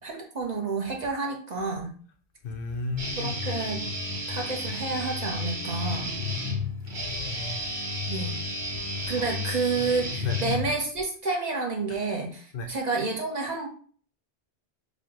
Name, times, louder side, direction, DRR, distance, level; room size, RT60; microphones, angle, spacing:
voice 1, 0.0-1.9 3.2-3.8 4.3-6.1 8.1-8.4 9.1-13.7, right 3 dB, 45° right, 1.1 m, -30 dB
voice 2, 2.4-3.4 6.8-7.7 9.0-9.3 10.2-10.4 12.5-12.7, left 4 dB, 60° left, 0.9 m, -35 dB
Guitar, 3.0-11.0, left 2 dB, 75° right, 1.6 m, -32 dB
6.6 x 2.3 x 3.0 m
omnidirectional pair, 1.1 m